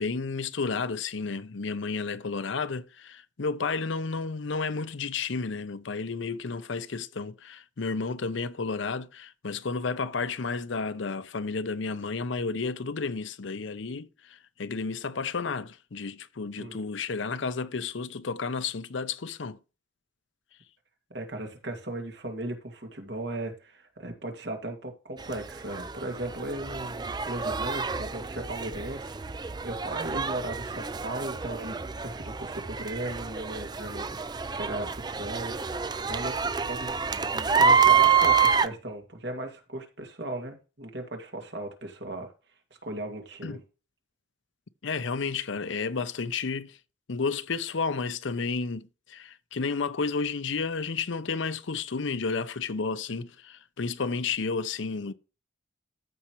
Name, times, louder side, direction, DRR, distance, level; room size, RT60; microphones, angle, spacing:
voice 1, 0.0-19.6 43.4-43.6 44.8-46.8 47.1-55.1, left 4 dB, 75° left, 0.7 m, -32 dB
voice 2, 21.1-35.6 35.9-42.3 42.8-43.6, right 1 dB, 60° right, 2.3 m, -37 dB
sound 1, 25.2-38.7, right 6 dB, 20° right, 0.4 m, -27 dB
14.5 x 5.6 x 3.1 m
head